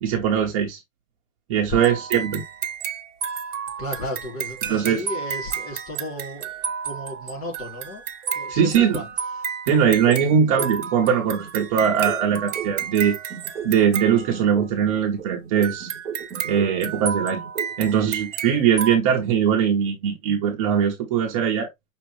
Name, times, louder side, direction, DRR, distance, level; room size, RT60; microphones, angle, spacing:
voice 1, 0.0-0.8 1.5-2.4 4.7-5.0 8.5-9.0 9.7-13.1 13.6-15.9 16.4-17.4 17.8-21.7, right 8 dB, 25° right, 0.8 m, -21 dB
sound 1, 1.7-14.9 15.6-19.0, right 7 dB, 60° right, 1.0 m, -32 dB
voice 2, 3.8-6.5 6.8-8.0 8.3-9.1 9.3-9.5, left 1 dB, 35° left, 4.0 m, -34 dB
sound 2, 10.0-13.0 13.3-17.0 17.3-18.0, right 7 dB, ahead, 0.4 m, -35 dB
6.0 x 2.9 x 3.1 m
hypercardioid pair, 145°, 43 cm